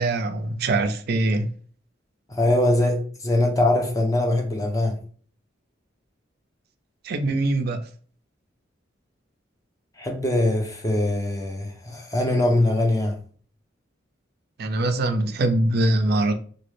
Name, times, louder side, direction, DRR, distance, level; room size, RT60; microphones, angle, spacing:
voice 1, 0.0-1.5 7.0-7.9 14.6-16.3, right 2 dB, 55° right, 0.4 m, -23 dB
voice 2, 2.3-5.0 10.0-13.2, left 1 dB, 20° left, 0.6 m, -22 dB
3.0 x 2.3 x 3.2 m
head